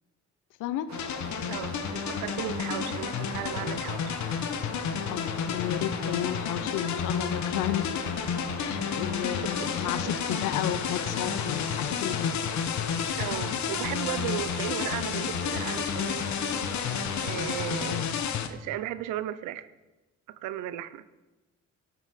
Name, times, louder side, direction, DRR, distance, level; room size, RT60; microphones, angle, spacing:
sound 1, 0.9-18.5, left 7 dB, 70° left, 1.0 m, -31 dB
Stream, 0.9-17.9, right 5 dB, 65° right, 1.4 m, -42 dB
voice 1, 1.5-4.2 10.1-10.6 13.2-16.3 17.2-18.1 18.5-19.7 20.4-21.0, right 12 dB, 90° right, 15 dB, 0.6 m, -36 dB
voice 2, 5.1-7.9 8.6-12.5 17.9-18.3, left 12 dB, 85° left, 13 dB, 0.6 m, -33 dB
12.5 x 8.1 x 4.1 m, 1.1 s
cardioid pair, 90°, 30 cm